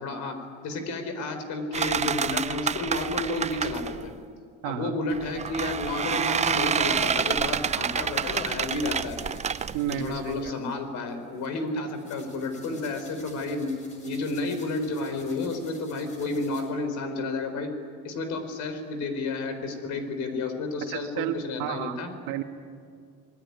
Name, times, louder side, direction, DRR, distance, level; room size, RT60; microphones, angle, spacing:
voice 1, 0.0-4.1 4.6-9.2 9.9-17.7 18.0-22.1, left 2 dB, 60° left, 8 dB, 4.5 m, -31 dB
sound 1, 1.7-4.1 5.1-10.5, right 7 dB, 20° right, 0.6 m, -28 dB
voice 2, 4.6-4.9 9.7-10.5 20.9-22.0 22.3-22.4, right 10 dB, 75° right, 5 dB, 2.3 m, -31 dB
sound 2, 6.6-16.6, left 2 dB, 20° left, 7.7 m, -53 dB
26.5 x 21.0 x 9.8 m, 2.2 s
cardioid pair, 140°, 33 cm